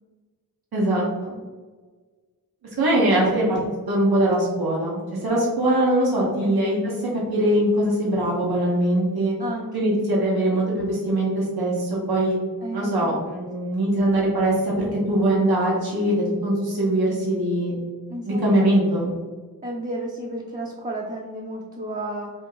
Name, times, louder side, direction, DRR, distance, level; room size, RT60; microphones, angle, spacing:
voice 1, 0.7-1.4 2.8-3.6 3.9-6.8 7.3-9.3 9.7-12.4 12.7-17.7 18.3-19.1, right 1 dB, 90° right, -4 dB, 1.0 m, -22 dB
voice 2, 2.8-3.1 6.3-6.6 9.4-10.0 12.6-13.2 18.1-18.4 19.6-22.3, right 1 dB, 25° right, -3 dB, 0.5 m, -32 dB
2.8 x 2.7 x 3.8 m, 1.4 s
wide cardioid pair, 70°, 36 cm